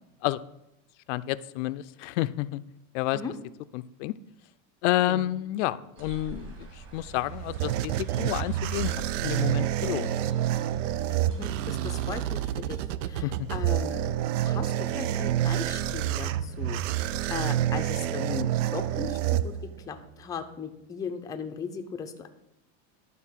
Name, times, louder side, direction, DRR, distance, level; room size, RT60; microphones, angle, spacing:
voice 1, 1.1-2.6 2.9-3.2 3.7-4.1 4.8-10.1 13.2-13.5, left 15 dB, 75° left, 14 dB, 0.5 m, -30 dB
sound 1, 6.0-12.2, right 3 dB, 35° right, 2.3 m, -48 dB
sound 2, 7.0-20.0, right 12 dB, 90° right, 0.6 m, -28 dB
voice 2, 11.3-14.0 14.4-19.5 19.9-22.3, left 5 dB, 10° left, 5 dB, 0.5 m, -38 dB
sound 3, 19.7-20.3, right 3 dB, 65° right, 0.9 m, -45 dB
11.5 x 4.0 x 7.3 m, 0.85 s
supercardioid pair, 160°, 36 cm